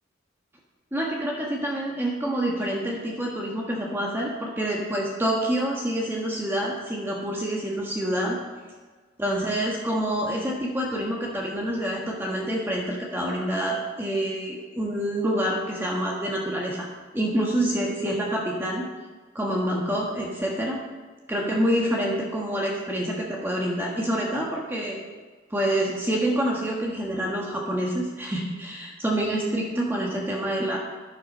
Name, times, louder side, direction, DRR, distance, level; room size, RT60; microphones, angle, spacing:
voice 1, 0.9-8.4 9.2-16.9 17.1-18.8 19.3-20.8 21.3-25.0 25.5-30.8, right 1 dB, 10° right, -3 dB, 1.5 m, -27 dB
12.0 x 11.0 x 4.3 m, 1.4 s
head